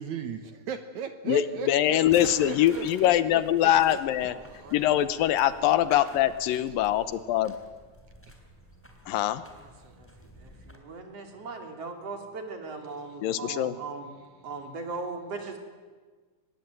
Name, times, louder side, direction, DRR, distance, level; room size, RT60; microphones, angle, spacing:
voice 1, 0.0-4.0 4.5-4.7, right 6 dB, 65° right, 9 dB, 2.2 m, -38 dB
voice 2, 1.3-4.4 4.7-7.5 9.1-9.4 13.2-13.8, left 12 dB, 80° left, 14 dB, 2.7 m, -23 dB
sound 1, 2.0-10.8, equal, 5° left, 3.0 m, -48 dB
voice 3, 4.6-5.1 9.6-14.1 14.4-15.6, right 3 dB, 45° right, 4 dB, 3.8 m, -39 dB
24.0 x 20.5 x 9.0 m, 1.4 s
omnidirectional pair, 4.1 m